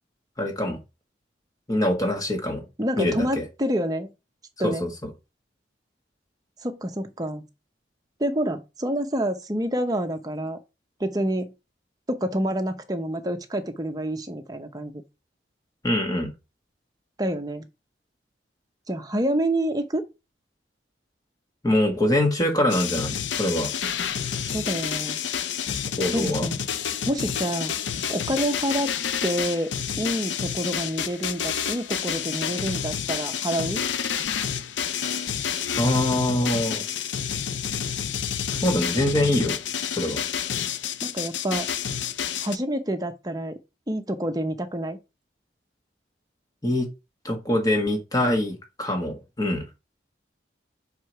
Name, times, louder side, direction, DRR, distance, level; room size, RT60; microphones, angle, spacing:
voice 1, 0.4-0.8 1.7-2.6 3.0-3.4 4.6-4.9 15.8-16.3 21.6-23.7 26.0-26.5 35.8-36.8 38.6-39.6 40.0-40.2 46.6-46.9 47.2-49.6, left 1 dB, 20° left, 1.6 m, -24 dB
voice 2, 2.8-4.1 4.6-4.9 6.6-7.4 8.2-10.6 11.0-11.5 12.1-15.0 17.2-17.7 18.9-20.1 24.4-25.2 26.1-26.6 27.1-27.7 28.1-28.9 29.2-29.7 30.0-33.8 41.0-41.7 42.4-43.6 43.9-45.0, right 1 dB, 20° right, 0.8 m, -27 dB
sound 1, 22.7-42.6, left 8 dB, 80° left, 0.6 m, -29 dB
5.7 x 4.8 x 4.6 m
head